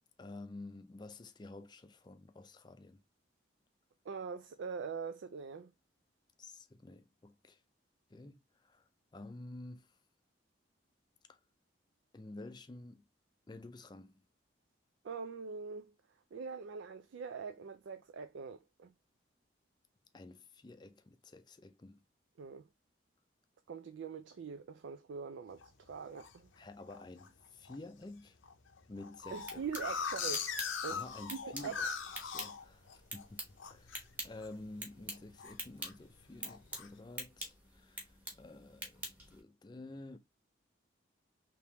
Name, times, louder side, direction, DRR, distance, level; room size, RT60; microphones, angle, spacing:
voice 1, 0.2-3.0 6.4-7.6 8.1-8.8 9.1-10.0 11.3-11.4 12.1-13.0 13.5-14.2 20.1-22.0 26.6-28.4 28.9-29.6 30.9-31.9 32.2-33.4 33.7-40.2, left 2 dB, 25° left, 0.4 m, -50 dB
voice 2, 4.1-5.7 15.0-15.9 16.3-18.9 22.4-22.6 23.7-26.5 29.3-31.8, right 5 dB, 75° right, 0.4 m, -43 dB
sound 1, 25.6-26.3 26.9-27.3 27.7-27.8 28.0-28.1 28.4-33.2 33.6-34.0 34.3-34.7 35.0-35.9 36.4-36.9, left 6 dB, 85° left, 0.7 m, -40 dB
sound 2, 29.2-39.4, equal, 10° right, 1.1 m, -48 dB
3.5 x 2.9 x 2.9 m
head